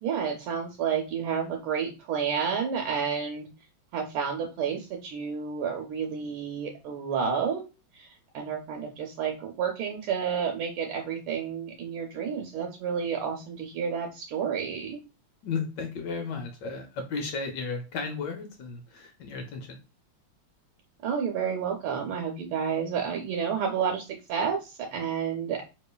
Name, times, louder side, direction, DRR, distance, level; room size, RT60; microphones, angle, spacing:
voice 1, 0.0-3.5 3.9-7.7 7.9-8.1 8.3-15.0 21.0-25.6, right 7 dB, 75° right, 3 dB, 1.4 m, -30 dB
voice 2, 15.4-19.8, left 4 dB, 80° left, 5 dB, 0.9 m, -34 dB
4.2 x 3.0 x 2.2 m, 0.29 s
omnidirectional pair, 2.4 m